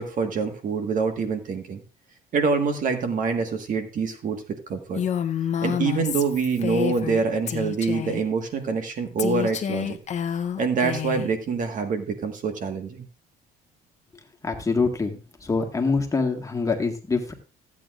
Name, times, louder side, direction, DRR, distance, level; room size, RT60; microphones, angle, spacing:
voice 1, 0.0-1.8 2.3-5.0 5.6-10.0 10.6-13.0, right 5 dB, 50° right, 6 dB, 1.6 m, -26 dB
Female speech woman speaking, 5.0-7.2 7.5-8.2 9.2-11.3, left 8 dB, 45° left, 0.8 m, -28 dB
voice 2, 14.4-17.3, left 4 dB, 20° left, 3 dB, 1.7 m, -25 dB
15.0 x 8.6 x 2.5 m, 0.32 s
cardioid pair, 110°, 17 cm